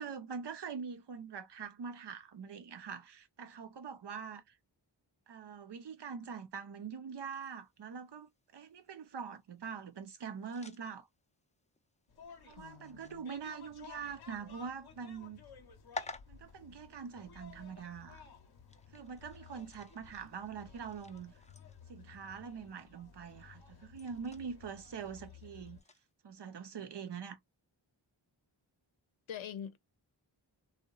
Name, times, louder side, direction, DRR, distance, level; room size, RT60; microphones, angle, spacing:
voice 1, 0.0-4.6 5.3-11.1 12.4-15.4 16.3-18.2 18.9-21.3 21.9-25.8 26.2-27.4, right 6 dB, 60° right, 0.7 m, -44 dB
sound 1, 7.3-26.1, left 3 dB, 15° left, 0.5 m, -54 dB
sound 2, 12.1-25.8, left 6 dB, 55° left, 0.8 m, -56 dB
voice 2, 12.6-13.3 29.3-29.8, left 9 dB, 85° left, 0.6 m, -44 dB
2.8 x 2.1 x 2.3 m
cardioid pair, 50°, 46 cm